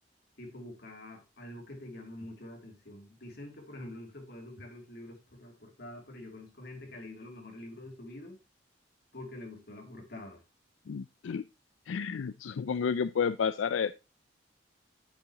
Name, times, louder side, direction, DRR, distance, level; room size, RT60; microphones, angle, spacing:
voice 1, 0.4-8.4 9.1-10.4, left 1 dB, 55° left, 2.8 m, -46 dB
voice 2, 10.9-11.4 11.9-13.9, left 6 dB, 80° left, 0.4 m, -31 dB
9.6 x 8.5 x 2.9 m
head